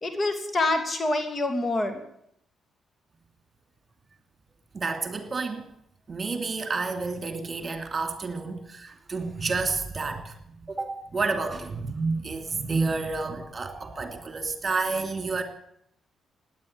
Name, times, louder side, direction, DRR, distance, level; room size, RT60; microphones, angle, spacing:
voice 1, 0.0-2.0, left 2 dB, 40° left, 2.8 m, -26 dB
voice 2, 4.7-5.6 6.1-10.3 10.6-15.4, right 3 dB, 40° right, 2.7 m, -30 dB
16.5 x 10.5 x 7.9 m
hypercardioid pair, 45°, 0 cm